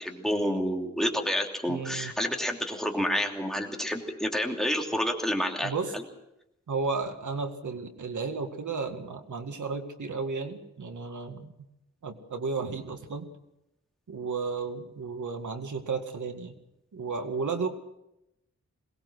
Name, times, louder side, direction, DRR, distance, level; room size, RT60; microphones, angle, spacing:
voice 1, 0.0-6.0, equal, ahead, 1 dB, 3.0 m, -29 dB
voice 2, 1.7-2.1 5.6-5.9 6.7-11.5 12.0-13.3 14.1-16.5 16.9-17.7, right 4 dB, 85° right, 6 dB, 2.0 m, -33 dB
22.5 x 19.0 x 6.3 m, 0.85 s
wide cardioid pair, 115°, 29 cm